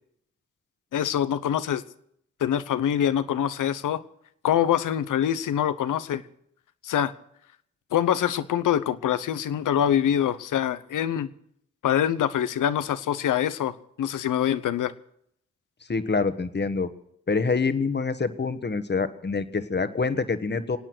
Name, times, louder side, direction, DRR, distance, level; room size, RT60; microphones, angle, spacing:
voice 1, 0.9-1.8 2.4-4.0 4.4-6.2 6.8-7.1 7.9-11.3 11.8-14.9, left 10 dB, 75° left, 14 dB, 0.9 m, -24 dB
voice 2, 15.9-16.9 17.3-20.8, left 4 dB, 35° left, 10 dB, 1.5 m, -26 dB
25.5 x 8.9 x 6.1 m, 0.70 s
supercardioid pair, 50°, 31 cm